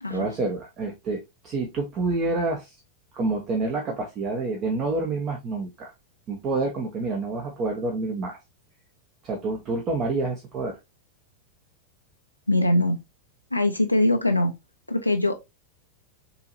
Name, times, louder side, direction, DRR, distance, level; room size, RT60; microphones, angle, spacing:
voice 1, 0.1-2.8 3.1-5.9 6.3-8.4 9.2-10.8, right 3 dB, 30° right, 1.0 m, -28 dB
voice 2, 12.5-13.0 13.5-14.5 14.9-15.3, left 1 dB, 85° left, 0.6 m, -22 dB
6.7 x 2.9 x 2.6 m
figure-of-eight pair, 90°, 0 cm